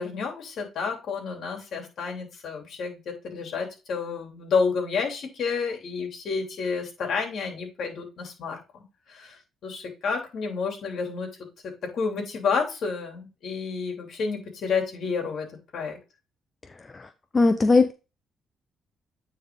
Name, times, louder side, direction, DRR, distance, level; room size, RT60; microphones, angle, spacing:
voice 1, 0.0-11.3 11.6-15.5 15.7-16.0, left 5 dB, 65° left, 3.1 m, -30 dB
voice 2, 17.3-17.9, left 3 dB, 30° left, 0.7 m, -19 dB
9.2 x 4.1 x 3.7 m
cardioid pair, 90°, 0 cm